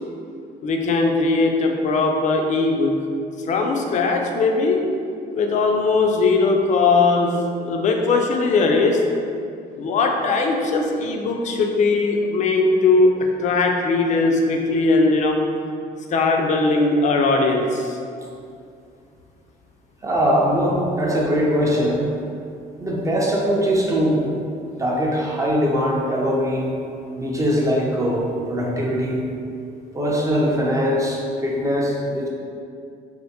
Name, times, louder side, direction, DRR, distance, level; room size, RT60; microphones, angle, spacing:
voice 1, 0.6-2.9 3.5-4.8 5.3-9.0 9.8-13.1 13.4-15.4 16.1-18.0, left 3 dB, 45° left, 2 dB, 0.4 m, -19 dB
voice 2, 20.0-22.0 22.8-24.2 24.8-26.7 27.2-29.2 29.9-32.3, equal, 20° right, -3 dB, 0.5 m, -21 dB
3.4 x 2.5 x 2.8 m, 2.5 s
cardioid pair, 110°, 17 cm